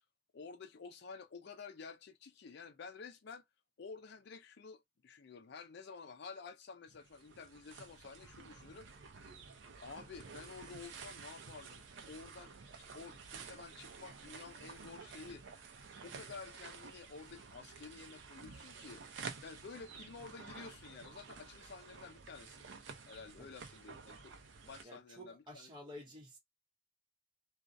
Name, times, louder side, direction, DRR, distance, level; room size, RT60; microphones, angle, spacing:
voice 1, 0.3-3.4 3.8-8.9 9.8-15.4 16.0-19.0 19.4-22.7 23.1-24.3 24.6-25.7, left 5 dB, 65° left, 0.5 m, -51 dB
sound 1, 6.9-24.8, right 5 dB, 90° right, 0.5 m, -52 dB
voice 2, 24.8-26.4, left 1 dB, 25° right, 0.6 m, -51 dB
2.4 x 2.0 x 2.5 m
head